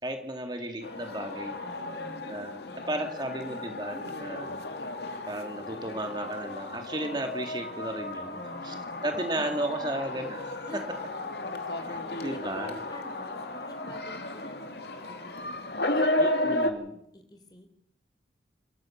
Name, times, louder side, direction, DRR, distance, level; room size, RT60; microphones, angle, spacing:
voice 1, 0.0-1.6 2.2-2.6 2.9-4.5 5.3-8.4 8.6-8.7 9.0-10.6 11.7-12.7 16.2-16.9, right 1 dB, 25° right, 4 dB, 2.2 m, -34 dB
sound 1, 0.8-16.7, left 1 dB, 70° left, 2.4 m, -34 dB
voice 2, 1.6-2.2 2.7-3.2 8.2-10.0 10.7-10.9 11.8-16.6 16.9-17.7, left 1 dB, 25° left, 7 dB, 3.6 m, -48 dB
29.0 x 14.0 x 7.3 m, 0.71 s
head